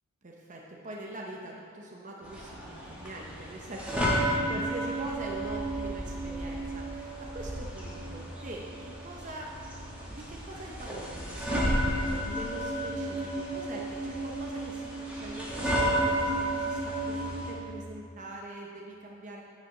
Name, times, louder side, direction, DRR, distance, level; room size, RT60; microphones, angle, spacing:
voice 1, 0.2-9.7 10.1-19.4, right 1 dB, 35° right, -1 dB, 0.7 m, -43 dB
sound 1, 2.2-17.5, right 1 dB, 5° right, 1.4 m, -32 dB
9.6 x 7.4 x 3.8 m, 2.4 s
head